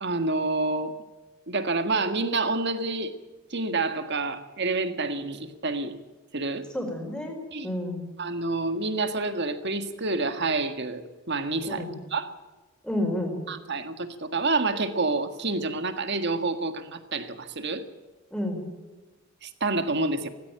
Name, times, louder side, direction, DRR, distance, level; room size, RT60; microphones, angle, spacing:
voice 1, 0.0-0.9 1.5-3.1 3.5-6.0 6.3-6.7 7.5-7.7 8.2-11.0 11.3-11.8 12.1-12.3 13.5-17.9 19.4-20.3, right 3 dB, 50° right, 9 dB, 1.8 m, -28 dB
voice 2, 6.7-7.4 7.6-8.1 11.6-12.0 12.8-13.4 18.3-18.6, left 1 dB, 5° left, 3 dB, 4.6 m, -30 dB
18.5 x 16.5 x 8.8 m, 1.2 s
head